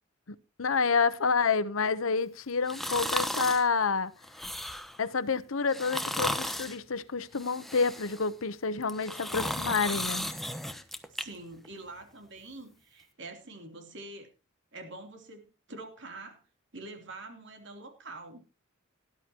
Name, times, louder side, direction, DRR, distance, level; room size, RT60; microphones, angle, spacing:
voice 1, 0.6-4.1 5.0-10.3, left 5 dB, 80° left, 0.9 m, -28 dB
sound 1, 2.7-3.7 4.2-5.0 5.7-6.8 7.3-8.3 8.8-11.2 11.6-11.7, left 1 dB, ahead, 1.0 m, -34 dB
voice 2, 11.1-14.3 14.7-16.4 16.7-18.4, right 2 dB, 60° right, 3.1 m, -45 dB
18.5 x 11.5 x 2.9 m
head